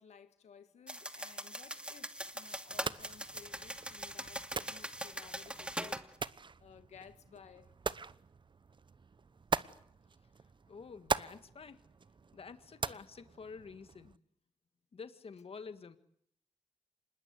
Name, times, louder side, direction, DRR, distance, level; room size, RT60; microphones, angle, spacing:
voice 1, 0.0-7.7, left 7 dB, 85° left, 1.9 m, -57 dB
sound 1, 0.9-6.1, right 1 dB, 10° right, 2.5 m, -42 dB
sound 2, 2.7-14.2, right 4 dB, 45° right, 1.0 m, -42 dB
voice 2, 10.7-11.8 12.3-14.2 14.9-16.0, left 5 dB, 60° left, 1.8 m, -49 dB
26.0 x 20.5 x 9.7 m
cardioid pair, 55°, 11 cm